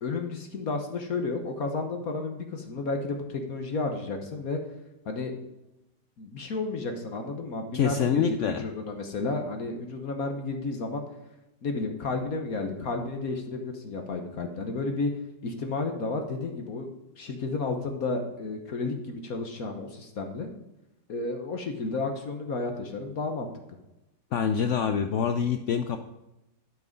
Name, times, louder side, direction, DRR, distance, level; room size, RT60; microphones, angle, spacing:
voice 1, 0.0-4.6 5.1-5.3 6.2-11.0 11.6-15.1 15.4-16.9 17.2-20.5 21.1-23.5, left 3 dB, 55° left, 4 dB, 1.4 m, -32 dB
voice 2, 7.7-8.6 24.3-26.0, left 7 dB, 75° left, 7 dB, 0.7 m, -25 dB
11.5 x 6.4 x 5.2 m, 0.95 s
omnidirectional pair, 1.9 m